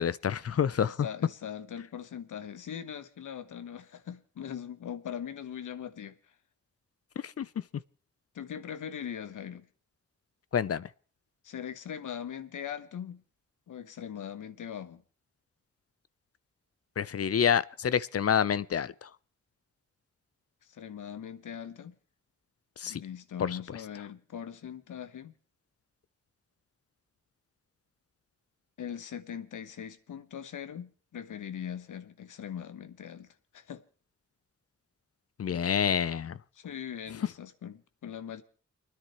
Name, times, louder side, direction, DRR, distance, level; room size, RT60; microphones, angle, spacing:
voice 1, 0.0-1.0 7.2-7.5 10.5-10.9 17.0-19.1 22.8-23.0 23.4-23.6 35.4-36.4, left 8 dB, 50° left, 0.6 m, -28 dB
voice 2, 0.8-6.2 8.3-9.7 11.4-13.2 13.7-15.0 20.7-21.9 22.8-25.3 28.8-33.3 33.5-33.8 36.5-38.4, left 8 dB, 80° left, 1.1 m, -40 dB
29.5 x 10.0 x 3.1 m
cardioid pair, 45°, 30 cm